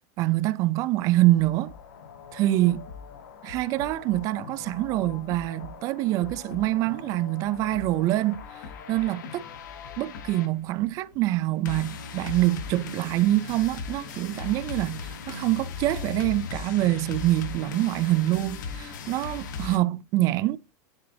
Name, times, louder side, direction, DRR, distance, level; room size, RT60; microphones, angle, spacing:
voice 1, 0.2-1.7 2.3-2.9 3.4-8.6 8.9-9.4 10.0-20.6, right 16 dB, 35° right, 0.4 m, -25 dB
sound 1, 1.0-19.8, left 5 dB, 90° left, 1.3 m, -39 dB
10.5 x 4.0 x 2.7 m
supercardioid pair, 155°, 10 cm